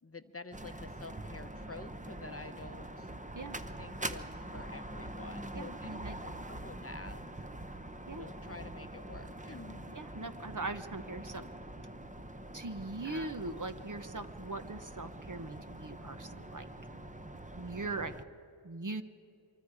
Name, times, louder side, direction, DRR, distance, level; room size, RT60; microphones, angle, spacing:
voice 1, 0.0-3.1 3.8-7.8 8.1-9.9 13.0-13.4 17.8-18.2, left 3 dB, 30° left, 9 dB, 0.8 m, -49 dB
sound 1, 0.5-18.2, right 1 dB, 15° right, 0.9 m, -44 dB
voice 2, 5.5-6.2 8.1-8.3 9.9-11.4 12.5-16.7 17.6-18.1 18.6-19.0, right 2 dB, 40° right, 9 dB, 1.1 m, -40 dB
25.0 x 23.5 x 5.0 m, 2.7 s
wide cardioid pair, 40°, 47 cm